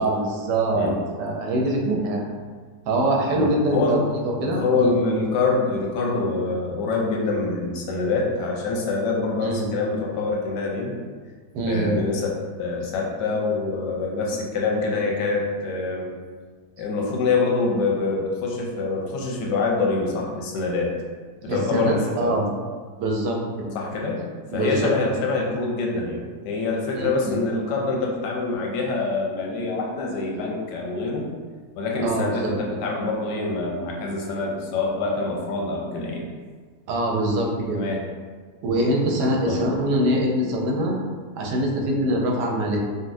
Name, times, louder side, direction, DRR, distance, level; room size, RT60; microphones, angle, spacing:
voice 1, 0.0-2.3 2.9-4.9 9.4-9.7 11.5-12.0 21.5-22.5 23.0-23.7 24.5-24.9 26.9-27.3 32.0-32.5 36.9-37.8 38.6-41.0 41.4-42.8, right 1 dB, 90° right, 0 dB, 1.2 m, -24 dB
voice 2, 3.3-4.0 4.5-10.9 11.6-16.1 16.8-20.9 21.4-22.3 23.7-24.3 24.5-31.3 31.8-36.2 37.7-38.0 39.5-39.7, left 3 dB, 90° left, -1 dB, 1.2 m, -25 dB
4.0 x 2.1 x 2.5 m, 1.5 s
omnidirectional pair, 1.8 m